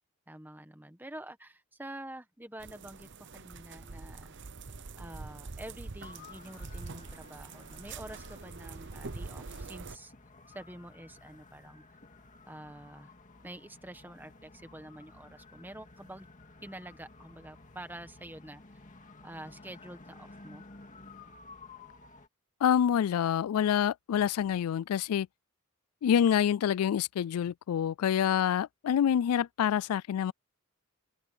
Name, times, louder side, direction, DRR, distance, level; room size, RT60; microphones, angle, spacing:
voice 1, 0.3-4.3 5.0-10.1 10.5-11.8 12.5-13.1 13.4-16.3 16.6-18.8 19.2-20.6, right 1 dB, 10° right, 1.5 m, -47 dB
sound 1, 2.6-10.0, right 3 dB, 55° right, 0.9 m, -44 dB
sound 2, 6.0-22.3, left 3 dB, 35° left, 2.1 m, -54 dB
voice 2, 22.6-25.3 26.0-30.3, left 9 dB, 90° left, 0.3 m, -27 dB
open air
head